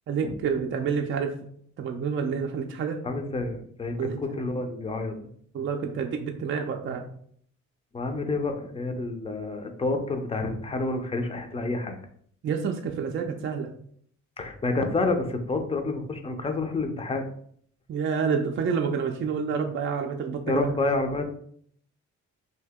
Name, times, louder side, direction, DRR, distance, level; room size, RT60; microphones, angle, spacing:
voice 1, 0.1-1.3 1.8-3.0 4.0-4.2 5.5-7.1 12.4-13.7 17.9-20.7, right 6 dB, 40° right, 3 dB, 0.4 m, -28 dB
voice 2, 3.0-5.2 7.9-12.0 14.4-17.2 20.5-21.3, left 3 dB, 20° left, 5 dB, 0.5 m, -29 dB
2.8 x 2.7 x 3.5 m, 0.62 s
cardioid pair, 90°, 30 cm